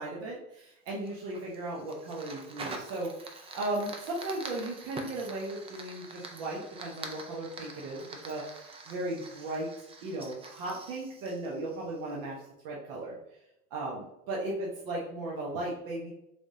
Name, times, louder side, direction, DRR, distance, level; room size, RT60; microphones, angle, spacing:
voice 1, 0.0-9.7 10.0-12.3 12.6-13.2 13.7-16.1, right 2 dB, 60° right, -4 dB, 1.0 m, -36 dB
Fire, 0.9-12.2, right 3 dB, 15° right, 0.3 m, -45 dB
3.4 x 3.4 x 2.7 m, 0.84 s
supercardioid pair, 110°, 37 cm